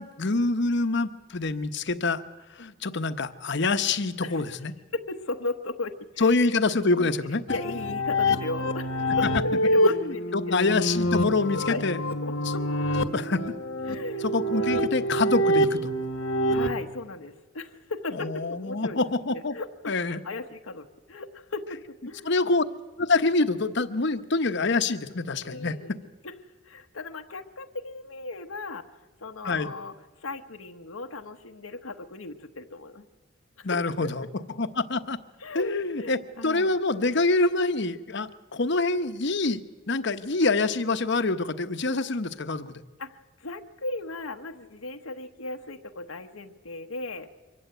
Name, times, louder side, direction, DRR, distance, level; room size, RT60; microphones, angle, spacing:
voice 1, 0.0-2.2 2.6-4.7 6.2-7.4 9.9-12.0 13.1-13.4 14.2-15.9 18.2-19.5 19.9-20.2 22.2-22.6 23.0-25.8 29.4-29.7 33.6-34.2 34.6-35.2 35.5-42.8, left 3 dB, 55° left, 10 dB, 1.0 m, -26 dB
voice 2, 4.9-6.4 7.0-10.3 11.7-11.8 12.1-12.8 13.9-14.9 16.5-19.0 19.3-21.8 22.0-22.3 25.5-26.0 26.2-26.3 26.6-28.9 29.2-29.9 30.2-33.1 33.6-34.3 35.4-36.7 43.0-47.3, left 2 dB, 90° left, 4 dB, 1.1 m, -37 dB
sound 1, 7.5-16.7, equal, 70° left, 1.3 m, -26 dB
24.0 x 15.0 x 9.1 m, 1.2 s
head